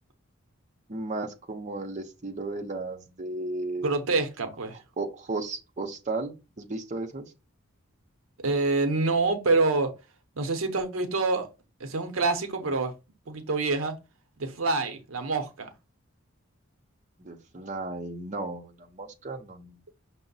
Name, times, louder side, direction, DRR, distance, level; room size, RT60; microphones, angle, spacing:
voice 1, 0.9-3.9 5.0-7.3 17.2-19.8, right 2 dB, 35° right, 0.7 m, -34 dB
voice 2, 3.8-4.8 8.4-9.9 10.4-11.5 11.8-12.9 13.3-14.0 14.4-15.7, right 3 dB, 75° right, 0.7 m, -26 dB
5.8 x 2.1 x 3.9 m
head